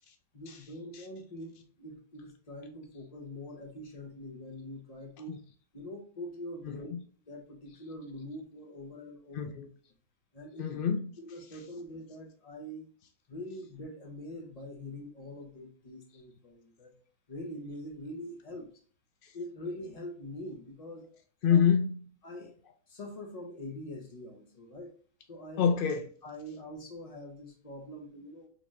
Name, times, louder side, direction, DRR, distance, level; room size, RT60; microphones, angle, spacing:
voice 1, 0.3-5.4 5.7-6.9 7.3-9.5 10.3-10.7 11.2-12.9 13.3-16.9 17.3-18.7 19.3-21.1 21.5-21.6 22.2-22.5 22.9-24.9 25.3-25.7 26.2-28.5, left 1 dB, 30° left, 0.8 m, -44 dB
voice 2, 6.7-7.0 9.3-9.7 10.6-11.1 19.2-19.3 21.4-22.0 25.6-26.1, left 7 dB, 85° left, 0.4 m, -27 dB
4.0 x 3.3 x 2.4 m
omnidirectional pair, 1.5 m